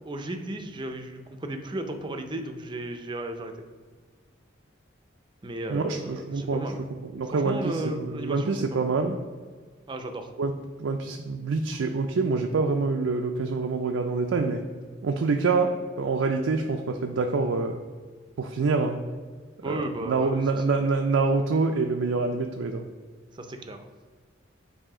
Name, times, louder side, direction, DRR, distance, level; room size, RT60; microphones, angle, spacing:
voice 1, 0.1-3.6 5.4-6.8 7.3-8.8 9.9-10.3 19.6-20.8 23.3-23.9, right 1 dB, 25° right, 6 dB, 0.5 m, -35 dB
voice 2, 5.7-6.7 7.0-9.2 10.4-10.5 10.8-14.6 15.0-17.8 18.4-19.0 19.6-22.9, right 4 dB, 90° right, 4 dB, 0.4 m, -26 dB
7.3 x 2.7 x 4.8 m, 1.5 s
head